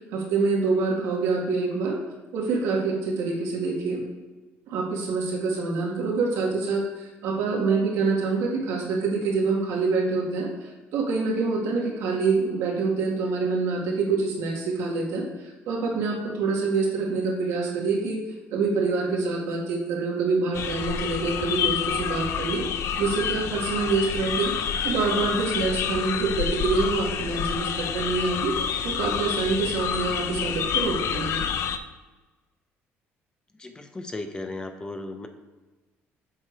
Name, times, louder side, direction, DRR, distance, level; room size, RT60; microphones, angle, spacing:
voice 1, 0.1-2.0 2.3-4.0 4.7-15.2 15.7-18.2 18.5-22.6 23.0-24.5 24.8-28.5 28.8-31.5, right 4 dB, 85° right, -2 dB, 1.9 m, -26 dB
sound 1, 20.5-31.8, left 8 dB, 65° left, 0.5 m, -28 dB
voice 2, 33.5-35.3, left 2 dB, 15° left, 6 dB, 0.7 m, -36 dB
7.4 x 4.9 x 4.6 m, 1.2 s
cardioid pair, 120°, 5 cm